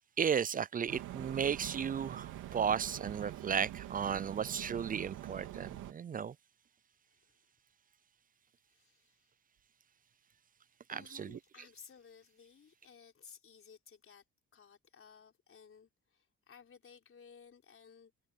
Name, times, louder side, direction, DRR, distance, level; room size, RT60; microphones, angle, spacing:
voice 1, 0.2-6.3 10.9-11.4, right 7 dB, 30° right, 0.4 m, -34 dB
sound 1, 0.9-5.9, right 13 dB, 90° right, 3.2 m, -45 dB
voice 2, 8.7-9.3 10.9-14.2 14.5-18.1, left 6 dB, 45° left, 4.3 m, -58 dB
cardioid pair, 90°, 30 cm